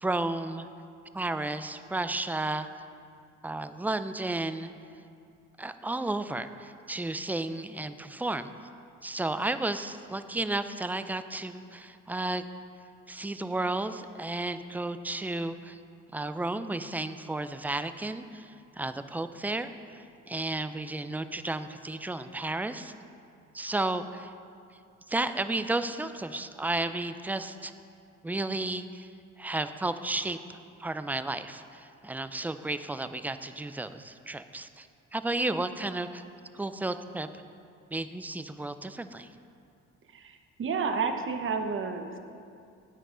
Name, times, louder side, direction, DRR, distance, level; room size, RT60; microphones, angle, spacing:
voice 1, 0.0-0.7 1.1-2.7 3.4-4.7 5.6-8.5 9.0-12.4 13.1-15.8 16.1-22.9 23.5-24.3 25.1-27.7 28.2-29.1 29.4-36.2 36.5-37.4 37.9-39.3, right 2 dB, 5° right, 11 dB, 0.3 m, -33 dB
voice 2, 40.1-42.2, right 5 dB, 45° right, 6 dB, 0.9 m, -31 dB
9.7 x 9.1 x 3.8 m, 2.4 s
cardioid pair, 90°, 30 cm